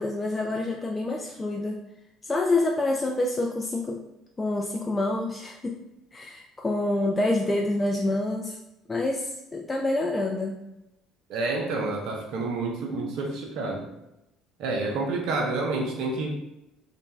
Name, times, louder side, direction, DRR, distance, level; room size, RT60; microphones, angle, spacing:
voice 1, 0.0-1.8 2.2-4.0 4.4-5.8 6.1-8.6 8.9-10.6, left 2 dB, 25° left, 0 dB, 0.3 m, -27 dB
voice 2, 11.3-13.9 14.6-16.4, right 3 dB, 70° right, 0 dB, 0.5 m, -29 dB
2.5 x 2.1 x 3.1 m, 0.89 s
hypercardioid pair, 65°, 0 cm